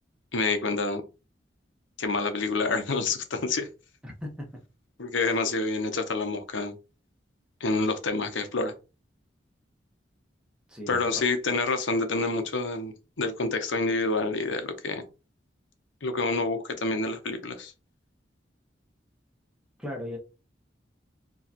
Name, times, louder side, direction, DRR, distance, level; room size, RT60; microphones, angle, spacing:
voice 1, 0.3-1.0 2.0-3.7 5.0-6.7 7.6-8.7 10.9-15.0 16.0-17.7, left 3 dB, 90° left, 0.9 m, -28 dB
voice 2, 4.0-4.5 5.2-5.4 10.7-11.2 19.8-20.2, left 1 dB, 5° right, 1.3 m, -37 dB
4.7 x 3.1 x 2.9 m
head